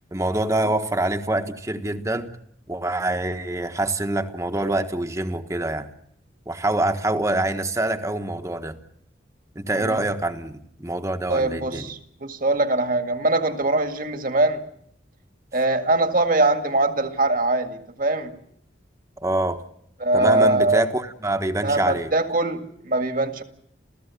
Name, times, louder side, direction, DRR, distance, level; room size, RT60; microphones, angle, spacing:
voice 1, 0.1-2.4 2.7-5.9 6.5-8.8 9.5-11.9 19.2-19.6 20.1-22.1, right 1 dB, 15° right, 1.4 m, -25 dB
voice 2, 11.3-14.6 15.5-18.3 20.0-20.8 21.6-23.4, right 2 dB, 50° right, 2.0 m, -22 dB
29.5 x 15.0 x 8.4 m
head